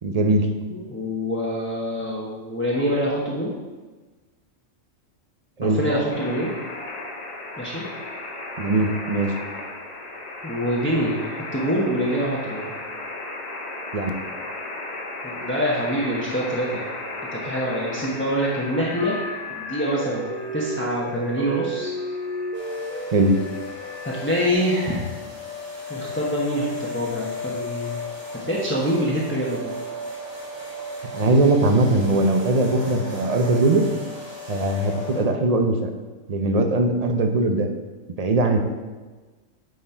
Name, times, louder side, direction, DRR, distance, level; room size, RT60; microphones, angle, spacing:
voice 1, 0.0-0.5 5.6-5.8 8.6-9.3 13.9-14.1 23.1-23.3 31.1-33.8 34.5-35.9 36.3-37.7 38.2-38.6, right 2 dB, 40° right, 5 dB, 0.6 m, -20 dB
voice 2, 0.7-3.5 5.6-6.5 7.6-7.8 10.4-12.7 15.2-16.8 17.3-19.2 19.6-21.9 24.0-25.2 25.9-28.0 28.3-29.7, equal, 10° left, -5 dB, 1.0 m, -25 dB
sound 1, 6.1-24.5, left 1 dB, 35° left, 0.9 m, -34 dB
sound 2, 22.5-35.2, left 2 dB, 20° right, 2.0 m, -35 dB
9.4 x 4.3 x 4.4 m, 1.3 s
omnidirectional pair, 1.3 m